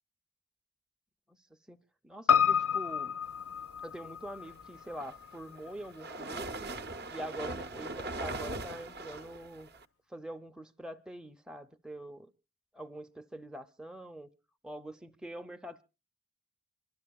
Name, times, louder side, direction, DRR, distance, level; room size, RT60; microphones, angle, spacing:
voice 1, 1.7-3.2 3.8-6.7 7.1-9.7 10.1-12.3 12.7-14.3 14.6-15.8, right 1 dB, 5° right, 0.6 m, -44 dB
Piano, 2.3-6.8 7.1-7.2, left 7 dB, 70° left, 0.6 m, -31 dB
sound 1, 4.8-9.9, right 2 dB, 45° right, 0.7 m, -40 dB
25.5 x 12.0 x 2.3 m
head